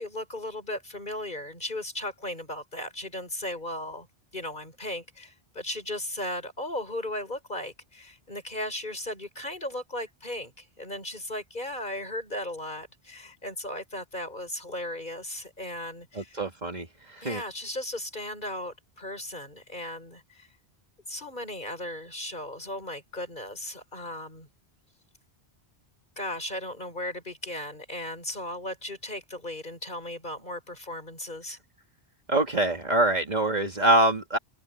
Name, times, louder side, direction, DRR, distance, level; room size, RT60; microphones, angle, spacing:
voice 1, 0.0-4.1 4.3-16.4 17.2-20.5 21.1-24.5 26.2-31.6, left 1 dB, 50° left, 5.5 m, -36 dB
voice 2, 16.2-16.9 17.2-17.4 32.3-34.4, right 1 dB, 45° right, 2.1 m, -24 dB
omnidirectional pair, 1.1 m